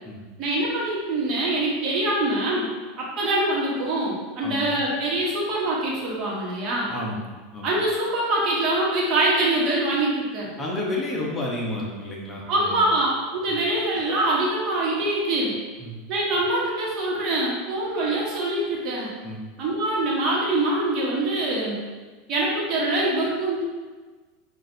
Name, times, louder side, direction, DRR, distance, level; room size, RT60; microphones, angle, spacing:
voice 1, 0.4-2.7 3.0-6.9 7.6-10.5 12.5-15.6 16.1-19.1 19.6-21.8 22.3-23.6, right 1 dB, 45° right, -4 dB, 1.1 m, -24 dB
voice 2, 4.4-4.8 6.9-7.7 10.6-12.9 15.8-15.9 19.2-19.4, left 1 dB, 20° left, -3 dB, 0.8 m, -31 dB
5.9 x 2.5 x 2.7 m, 1.3 s
supercardioid pair, 135°, 0 cm